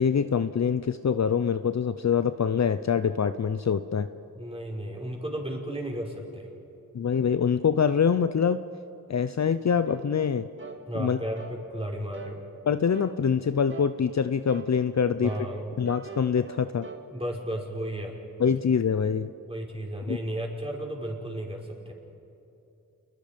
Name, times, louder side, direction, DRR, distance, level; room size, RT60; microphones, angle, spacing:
voice 1, 0.0-4.1 6.9-8.6 9.1-10.5 10.9-11.2 12.7-15.3 15.8-16.9 18.4-19.3 20.1-20.2, left 7 dB, 50° left, 11 dB, 0.7 m, -25 dB
voice 2, 4.4-6.5 10.9-12.4 15.2-15.7 17.1-18.1 19.4-21.9, right 1 dB, 15° right, -1 dB, 5.2 m, -34 dB
sound 1, 9.9-10.1 10.6-10.8 11.4-11.6 12.1-12.4 12.9-13.2 13.7-14.0 14.5-14.7 15.3-17.1, right 4 dB, 35° right, 2.0 m, -42 dB
29.0 x 21.5 x 5.2 m, 2.8 s
cardioid pair, 50°, 36 cm